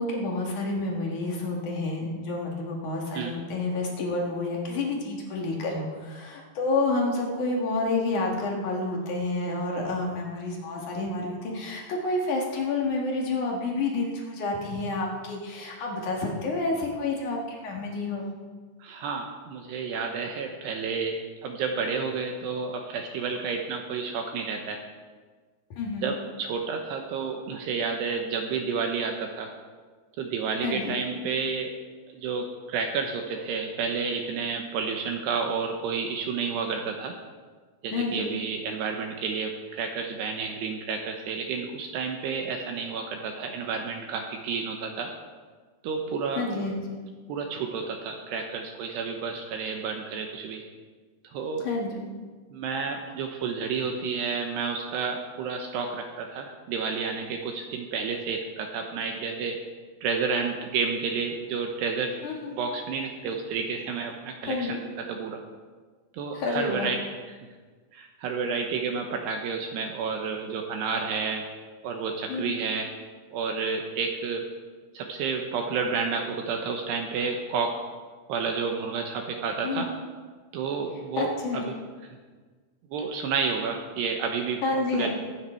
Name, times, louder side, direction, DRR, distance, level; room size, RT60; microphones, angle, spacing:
voice 1, 0.0-18.3 25.8-26.1 30.6-31.0 37.9-38.4 46.4-47.0 51.6-52.1 62.2-62.5 64.5-64.8 66.3-66.9 72.3-72.6 79.6-79.9 81.2-81.6 84.6-85.1, left 3 dB, 55° left, -1 dB, 2.3 m, -29 dB
voice 2, 18.8-21.1 21.4-24.8 26.0-29.5 30.2-31.7 32.1-37.1 37.8-45.1 45.8-46.5 47.3-50.6 51.3-51.6 52.5-59.6 60.0-62.1 62.5-64.8 65.1-65.4 66.1-67.0 67.9-71.4 71.8-72.9 73.3-74.4 74.9-77.7 78.3-79.9 80.5-81.7 82.9-85.1, right 5 dB, 75° right, 3 dB, 2.5 m, -30 dB
21.5 x 9.3 x 4.5 m, 1.5 s
omnidirectional pair, 5.9 m